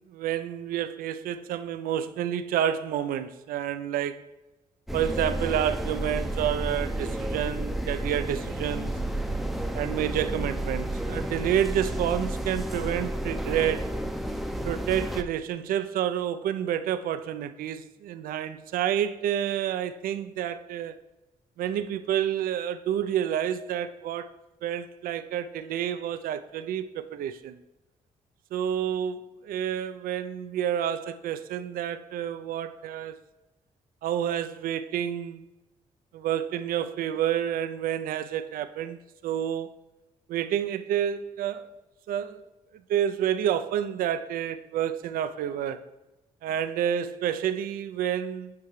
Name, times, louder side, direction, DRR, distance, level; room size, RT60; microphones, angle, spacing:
voice 1, 0.1-4.2 4.9-8.9 9.7-13.9 14.6-20.9 21.6-24.3 24.6-27.6 28.5-33.2 34.0-35.4 36.1-39.7 40.3-41.7 42.1-42.4 42.9-45.8 46.4-48.5, right 10 dB, 80° right, 0.4 m, -29 dB
sound 1, 4.9-15.2, right 1 dB, ahead, 0.6 m, -31 dB
8.6 x 5.5 x 3.1 m
supercardioid pair, 60°, 15 cm